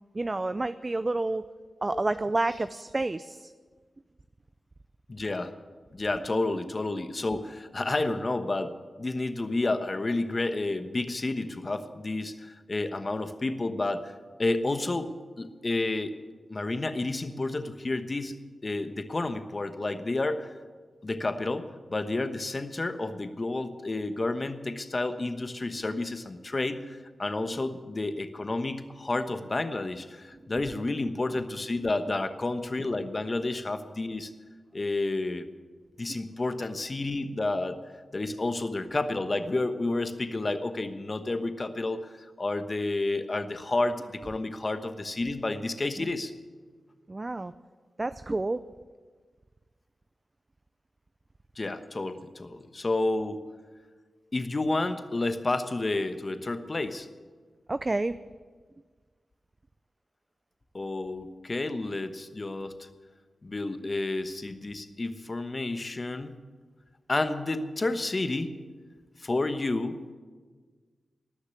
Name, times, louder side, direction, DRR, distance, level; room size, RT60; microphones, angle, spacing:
voice 1, 0.1-1.5 1.8-3.5 27.4-27.6 30.4-30.5 46.0-46.1 47.1-47.5 48.0-48.6 57.7-58.2, right 2 dB, 30° right, 13 dB, 0.4 m, -29 dB
voice 2, 5.1-5.6 5.9-14.1 14.4-16.2 16.5-18.4 18.6-20.5 21.0-34.3 34.7-35.5 36.0-37.8 38.1-46.3 51.6-53.4 54.3-57.1 60.7-62.9 63.4-66.4 67.1-68.6 69.2-70.0, left 2 dB, 40° left, 10 dB, 1.1 m, -30 dB
19.0 x 6.6 x 9.8 m, 1.5 s
cardioid pair, 60°, 0 cm